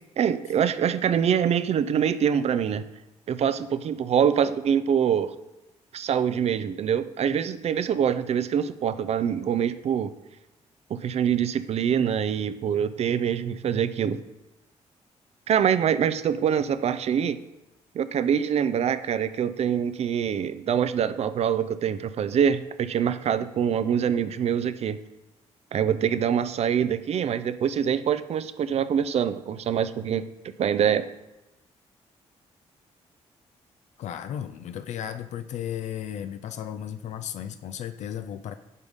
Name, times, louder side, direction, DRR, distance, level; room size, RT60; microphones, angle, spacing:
voice 1, 0.2-2.8 3.3-5.3 5.9-10.1 10.9-14.2 15.5-17.4 17.9-25.0 25.7-30.2 30.6-31.0, right 8 dB, 60° right, 13 dB, 0.5 m, -24 dB
voice 2, 34.0-38.6, left 9 dB, 70° left, 9 dB, 0.4 m, -34 dB
8.2 x 5.2 x 3.6 m, 0.96 s
cardioid pair, 75°, 12 cm